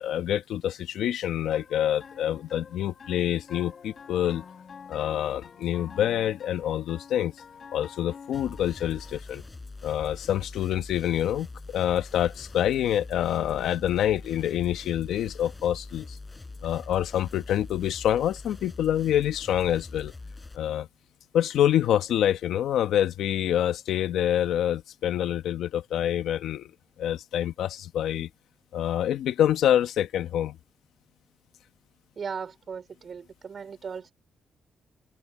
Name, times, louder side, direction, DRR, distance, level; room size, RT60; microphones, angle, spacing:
voice 1, 0.0-4.4 4.9-7.3 7.7-9.4 9.8-16.2 16.6-20.1 20.5-20.9 21.3-26.7 27.0-28.3 28.7-30.6, left 11 dB, 85° left, 1.2 m, -26 dB
sound 1, 1.5-9.2, left 6 dB, 50° left, 7.8 m, -47 dB
sound 2, 8.3-20.6, left 3 dB, 20° left, 5.5 m, -43 dB
voice 2, 32.2-34.1, right 6 dB, 50° right, 4.1 m, -37 dB
cardioid pair, 95°, 0 cm